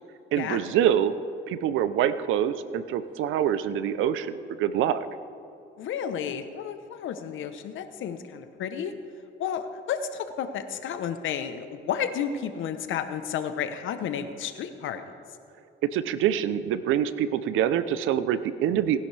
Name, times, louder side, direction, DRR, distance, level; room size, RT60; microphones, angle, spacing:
voice 1, 0.3-1.2 1.5-5.1 15.8-19.0, right 10 dB, 90° right, 13 dB, 0.6 m, -25 dB
voice 2, 5.8-8.9 9.4-15.0, left 8 dB, 80° left, 9 dB, 0.9 m, -32 dB
19.0 x 11.0 x 3.4 m, 2.7 s
cardioid pair, 90°, 20 cm